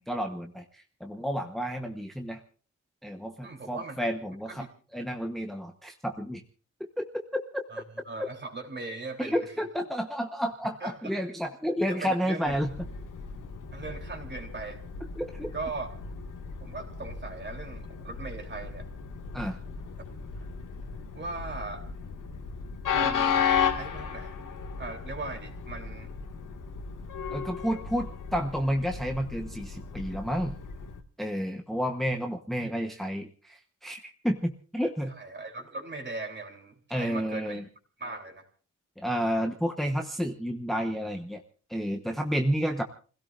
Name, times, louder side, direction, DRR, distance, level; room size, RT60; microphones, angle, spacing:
voice 1, 0.1-2.4 3.0-4.6 4.9-6.4 7.0-7.8 8.2-8.3 9.2-12.7 15.2-15.5 19.3-19.6 27.3-30.5 31.2-35.1 36.9-37.7 39.0-41.4 41.7-42.8, equal, ahead, 4 dB, 1.1 m, -31 dB
voice 2, 3.4-4.0 4.5-4.7 7.7-9.5 10.8-11.1 11.8-12.6 13.7-14.8 15.5-15.9 16.6-18.9 20.4-20.5 21.1-21.8 22.9-23.4 23.7-24.4 24.8-26.1 32.6-32.7 35.1-37.6 38.0-38.5, right 3 dB, 35° right, 3 dB, 3.5 m, -39 dB
Train, 12.5-31.0, left 7 dB, 80° left, 2.0 m, -34 dB
29.0 x 17.0 x 2.6 m, 0.40 s
wide cardioid pair, 150°, 31 cm